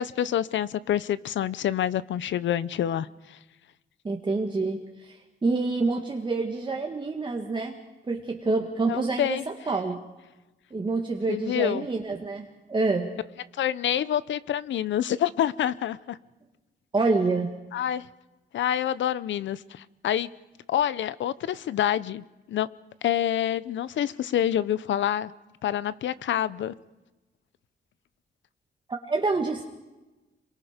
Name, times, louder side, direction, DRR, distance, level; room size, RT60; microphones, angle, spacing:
voice 1, 0.0-3.4 8.9-9.4 11.3-11.9 13.6-16.2 17.7-18.1 18.5-20.3 20.7-22.7 23.0-25.3 25.6-26.7, left 10 dB, 90° left, 17 dB, 0.8 m, -27 dB
voice 2, 4.0-7.7 8.1-10.0 10.7-13.1 16.9-17.5 28.9-29.6, right 3 dB, 25° right, 1 dB, 1.8 m, -27 dB
27.0 x 23.0 x 5.2 m, 1.1 s
wide cardioid pair, 140°, 19 cm